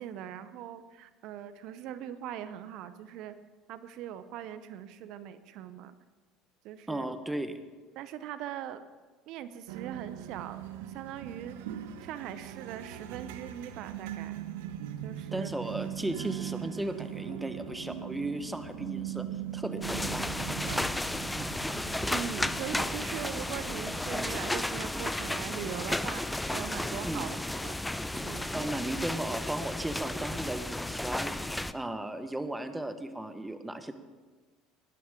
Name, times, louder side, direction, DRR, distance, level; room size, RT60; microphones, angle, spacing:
voice 1, 0.0-3.4 3.7-5.9 6.6-7.1 8.0-8.8 9.3-10.6 10.9-11.6 12.0-14.4 15.0-15.5 22.1-27.8 28.1-28.9, right 10 dB, 65° right, 12 dB, 0.7 m, -41 dB
voice 2, 6.9-7.6 15.3-20.3 21.3-21.5 27.0-27.3 28.5-31.3 31.7-33.9, right 1 dB, 10° right, 9 dB, 1.1 m, -36 dB
sound 1, 9.7-24.3, right 11 dB, 85° right, 0.9 m, -40 dB
sound 2, 19.8-31.7, left 1 dB, 5° left, 0.5 m, -33 dB
19.0 x 11.0 x 3.7 m, 1.4 s
supercardioid pair, 90°, 0 cm